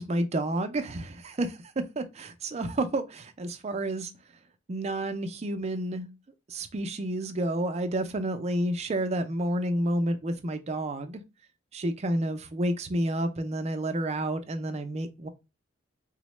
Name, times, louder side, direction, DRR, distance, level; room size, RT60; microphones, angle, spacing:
voice 1, 0.0-4.1 4.7-6.1 6.5-11.2 11.7-15.3, right 1 dB, 35° right, 0.4 m, -30 dB
4.0 x 2.0 x 3.0 m
head